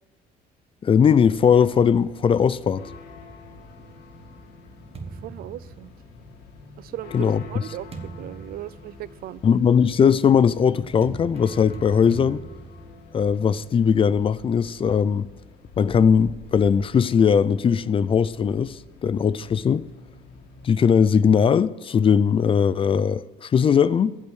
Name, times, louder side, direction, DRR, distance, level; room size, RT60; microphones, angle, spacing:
voice 1, 0.8-2.9 7.1-7.4 9.4-12.4 13.1-15.3 15.8-19.9 20.6-24.2, left 7 dB, 30° left, 0.4 m, -19 dB
sound 1, 1.1-20.7, left 4 dB, 80° left, 2.1 m, -46 dB
sound 2, 3.6-6.4 7.2-14.2, right 4 dB, 35° right, 1.4 m, -43 dB
voice 2, 5.1-5.9 6.8-9.6, right 14 dB, 60° right, 0.4 m, -37 dB
15.0 x 5.5 x 8.1 m
cardioid pair, 110°, 17 cm